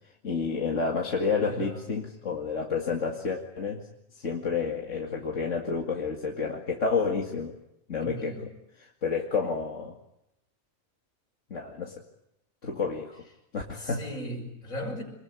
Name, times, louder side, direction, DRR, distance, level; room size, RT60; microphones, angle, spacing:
voice 1, 0.2-3.8 4.2-7.6 7.9-8.4 9.0-10.0 11.5-12.0 12.6-13.2 13.5-14.0, left 5 dB, 65° left, 1 dB, 2.5 m, -30 dB
voice 2, 1.4-1.9 8.0-8.5 13.7-15.0, equal, 80° left, 3 dB, 6.2 m, -37 dB
26.5 x 21.5 x 9.7 m, 0.83 s
omnidirectional pair, 1.4 m